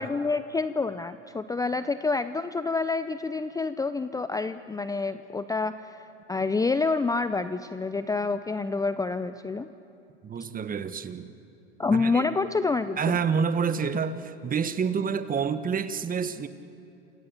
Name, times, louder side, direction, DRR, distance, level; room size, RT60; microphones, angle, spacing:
voice 1, 0.0-9.7 11.8-13.2, left 4 dB, 10° left, 12 dB, 0.7 m, -28 dB
voice 2, 10.2-11.3 11.9-12.2 13.0-16.5, right 6 dB, 25° right, 12 dB, 1.5 m, -28 dB
29.5 x 27.0 x 7.3 m, 2.9 s
hypercardioid pair, 95°, 34 cm